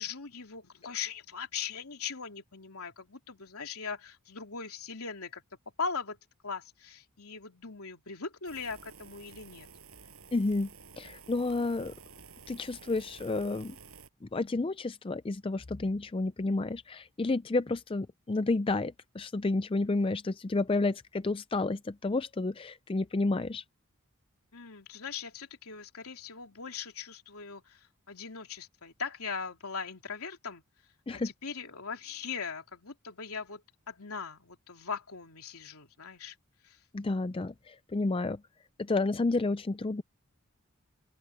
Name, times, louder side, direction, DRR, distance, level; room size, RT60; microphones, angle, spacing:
voice 1, 0.0-5.4 5.8-6.2 6.4-9.7 24.5-30.6 31.1-36.3 36.6-36.8, left 5 dB, 80° left, 3.3 m, -40 dB
sound 1, 8.4-14.1, right 5 dB, 75° right, 6.7 m, -52 dB
voice 2, 10.3-10.7 11.0-11.9 12.5-13.8 14.3-23.6 31.1-31.3 36.9-38.4 38.8-40.0, left 3 dB, 25° left, 0.4 m, -30 dB
open air
head